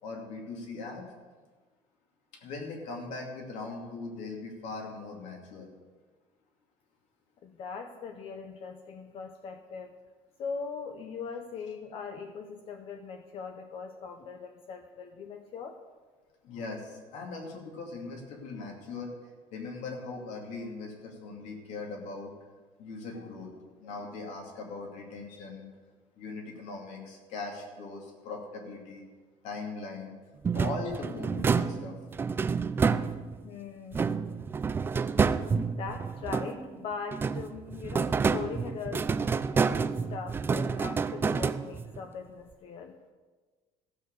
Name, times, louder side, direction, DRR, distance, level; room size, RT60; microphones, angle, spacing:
voice 1, 0.0-1.0 2.3-5.7 16.4-22.3 22.8-23.5 23.8-25.7 26.2-29.0 29.4-30.1 30.5-32.0, left 3 dB, 70° left, 1 dB, 2.6 m, -40 dB
voice 2, 7.4-10.0 10.4-15.8 33.4-34.2 35.7-39.1 39.7-39.8 40.1-43.0, left 5 dB, 45° left, 6 dB, 0.7 m, -40 dB
sound 1, 30.4-33.5 33.9-36.8 37.1-42.0, right 5 dB, 20° right, 0.3 m, -29 dB
15.0 x 6.6 x 6.7 m, 1.4 s
cardioid pair, 165°, 12 cm